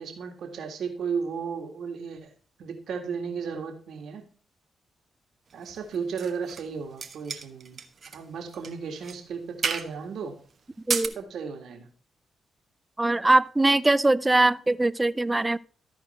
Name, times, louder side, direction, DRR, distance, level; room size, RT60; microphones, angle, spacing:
voice 1, 0.0-2.2 2.6-4.2 5.5-7.8 8.1-10.3 11.2-11.9, right 6 dB, 70° right, 1.9 m, -34 dB
sound 1, 5.6-6.7 7.0-8.2 8.5-8.7 9.0-9.2 9.6-9.9 10.7-11.1, right 6 dB, 55° right, 1.1 m, -32 dB
voice 2, 13.0-15.6, right 2 dB, 20° right, 0.4 m, -21 dB
13.5 x 4.5 x 4.3 m
supercardioid pair, 55°, 0 cm